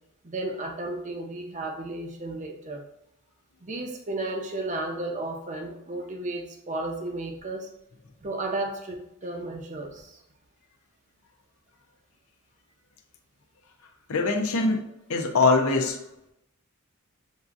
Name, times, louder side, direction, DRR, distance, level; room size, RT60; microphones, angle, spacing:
voice 1, 0.2-2.8 3.6-7.7 8.2-10.2, right 2 dB, 35° right, 3 dB, 0.6 m, -33 dB
voice 2, 14.1-14.8 15.1-16.0, left 3 dB, 80° left, 3 dB, 0.6 m, -22 dB
7.0 x 2.7 x 2.4 m, 0.82 s
head